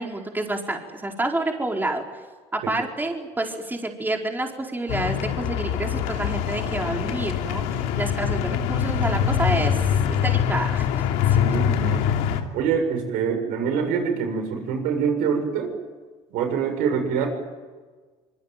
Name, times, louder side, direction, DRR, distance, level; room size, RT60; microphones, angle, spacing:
voice 1, 0.0-2.0 2.5-9.8 10.1-10.9 11.3-11.5, right 2 dB, 15° right, 1 dB, 4.7 m, -28 dB
sound 1, 4.9-12.4, left 9 dB, 75° left, 2.8 m, -24 dB
voice 2, 11.3-12.1 12.5-15.7 16.3-17.3, right 6 dB, 75° right, 6 dB, 7.0 m, -25 dB
25.0 x 23.5 x 9.3 m, 1.4 s
supercardioid pair, 80°, 15 cm